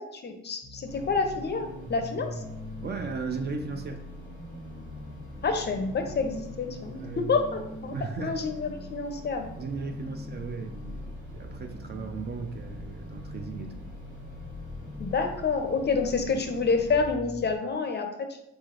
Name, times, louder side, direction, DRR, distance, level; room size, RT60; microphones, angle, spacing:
voice 1, 0.0-2.4 5.4-7.9 8.2-9.5 15.0-18.5, left 4 dB, 35° left, 6 dB, 0.5 m, -28 dB
sound 1, 0.6-17.6, left 1 dB, ahead, 0.8 m, -43 dB
sound 2, 0.9-17.1, equal, 80° right, 1.2 m, -45 dB
voice 2, 2.8-4.0 7.0-7.3 7.9-8.4 9.6-13.8, right 4 dB, 35° right, 6 dB, 0.4 m, -36 dB
3.8 x 3.2 x 2.5 m, 0.87 s
cardioid pair, 90°, 30 cm